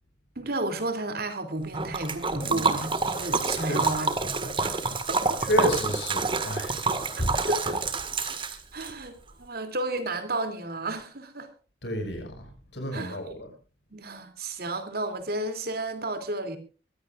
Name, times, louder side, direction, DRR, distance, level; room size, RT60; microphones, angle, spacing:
voice 1, 0.4-5.4 7.5-7.8 8.3-8.4 8.7-11.5 12.9-13.2 13.9-16.6, right 2 dB, 55° right, 3.0 m, -32 dB
Liquid, 1.7-8.9, right 3 dB, 30° right, 1.8 m, -28 dB
voice 2, 5.5-7.4 11.8-13.5, equal, 70° left, 5.7 m, -30 dB
23.0 x 16.0 x 2.5 m
head